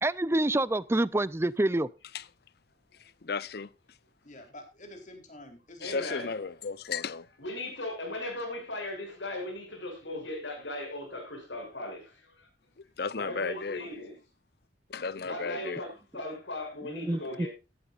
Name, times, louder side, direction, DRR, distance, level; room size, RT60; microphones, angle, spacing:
voice 1, 0.0-1.9 16.9-17.5, right 1 dB, 15° right, 0.5 m, -27 dB
voice 2, 3.2-3.7 5.8-7.3 13.0-13.9 14.9-15.8, left 5 dB, 60° left, 0.7 m, -34 dB
voice 3, 4.2-6.2 17.1-17.2, left 1 dB, 45° left, 3.8 m, -48 dB
voice 4, 5.8-6.3 7.4-12.5 13.1-14.1 15.2-17.5, left 1 dB, 90° left, 6.9 m, -38 dB
15.0 x 12.5 x 2.5 m
head